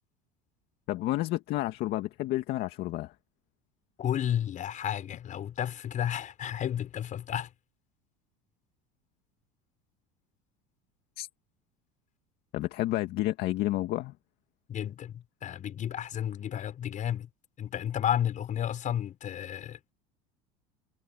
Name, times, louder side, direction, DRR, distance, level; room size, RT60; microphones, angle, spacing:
voice 1, 0.9-3.2 11.2-11.3 12.5-14.2, left 16 dB, 60° left, 2.2 m, -30 dB
voice 2, 4.0-7.5 14.7-17.3 17.6-19.9, left 10 dB, 45° left, 6.5 m, -32 dB
supercardioid pair, 100°, 19 cm